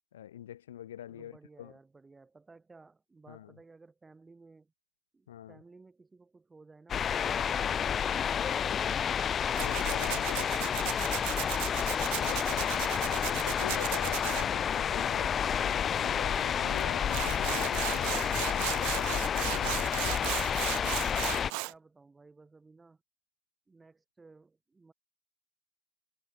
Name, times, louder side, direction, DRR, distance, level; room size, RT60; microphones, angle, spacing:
voice 1, 0.1-1.7 3.3-3.5 5.3-5.6 9.6-11.2 12.2-20.6, left 11 dB, 70° left, 3.0 m, -45 dB
voice 2, 1.1-4.7 5.1-9.9 10.4-11.8 19.9-23.0 23.7-24.9, right 3 dB, 15° right, 5.4 m, -57 dB
sound 1, 6.9-21.5, left 8 dB, 30° left, 0.7 m, -30 dB
Tools, 9.6-14.5 16.8-16.9 17.1-21.7, right 40 dB or more, 50° right, 0.6 m, -36 dB
figure-of-eight pair, 85°, 0 cm